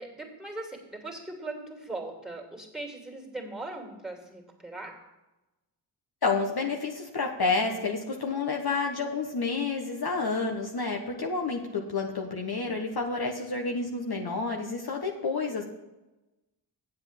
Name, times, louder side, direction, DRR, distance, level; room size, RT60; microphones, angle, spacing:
voice 1, 0.0-5.1 11.6-12.0, right 2 dB, ahead, 2 dB, 2.8 m, -40 dB
voice 2, 6.2-15.6, left 4 dB, 50° left, 2 dB, 1.3 m, -29 dB
7.9 x 7.8 x 6.0 m, 1.0 s
supercardioid pair, 45°, 49 cm